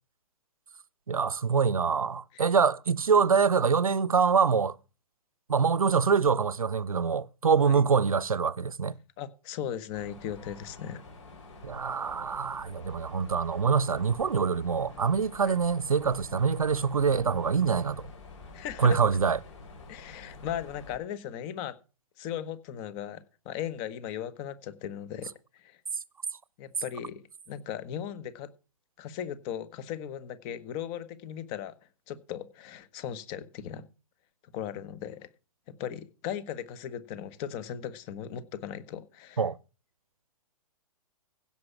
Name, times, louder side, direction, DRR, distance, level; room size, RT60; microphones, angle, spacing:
voice 1, 1.1-4.8 5.5-9.0 11.6-18.1 18.8-19.4 39.4-39.6, right 5 dB, 75° right, 0.6 m, -25 dB
voice 2, 9.2-11.0 15.4-15.5 18.5-19.0 19.9-21.8 22.2-25.8 26.6-28.5 29.0-31.7 32.1-33.9 34.5-35.3 35.8-39.5, left 10 dB, 30° left, 1.3 m, -37 dB
Mechanisms, 9.9-21.0, left 3 dB, 55° left, 4.8 m, -48 dB
16.0 x 5.9 x 6.1 m
figure-of-eight pair, 115°, 18 cm